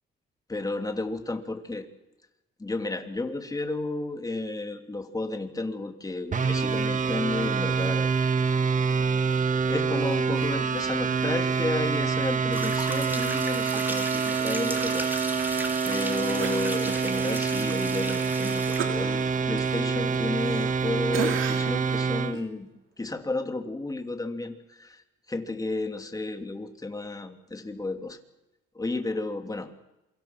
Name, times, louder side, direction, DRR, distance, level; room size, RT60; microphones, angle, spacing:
voice 1, 0.5-1.9 2.6-8.1 8.9-9.0 9.7-22.7 23.0-25.0 25.3-28.2 28.7-29.7, left 2 dB, 20° left, 6 dB, 3.0 m, -32 dB
sound 1, 6.3-22.3, right 5 dB, 40° right, 1.6 m, -26 dB
sound 2, 12.5-18.8, right 1 dB, 10° right, 3.6 m, -36 dB
Cough, 16.4-17.4 17.8-18.0 18.8-20.8 21.1-21.8 22.3-22.5, right 8 dB, 80° right, 2.9 m, -35 dB
27.5 x 24.5 x 6.0 m, 0.96 s
cardioid pair, 90°, 20 cm